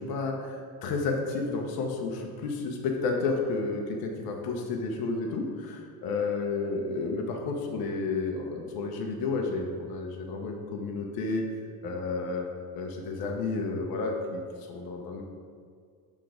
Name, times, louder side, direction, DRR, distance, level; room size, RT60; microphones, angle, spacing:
voice 1, 0.1-11.4 11.8-12.5 12.7-14.4 14.7-15.2, left 3 dB, 70° left, 1 dB, 0.9 m, -31 dB
6.0 x 3.7 x 4.9 m, 2.1 s
cardioid pair, 155°, 38 cm